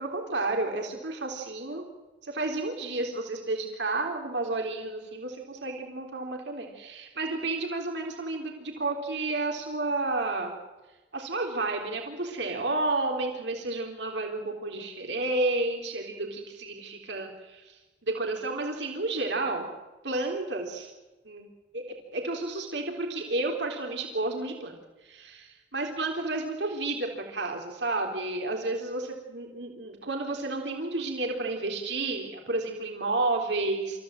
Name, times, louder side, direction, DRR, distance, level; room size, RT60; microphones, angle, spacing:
voice 1, 0.0-1.8 2.2-10.5 11.1-19.7 20.0-20.9 21.3-21.5 21.7-21.8 22.1-24.8 25.0-34.0, right 2 dB, 75° right, 2 dB, 3.6 m, -31 dB
28.0 x 14.5 x 7.7 m, 1.2 s
head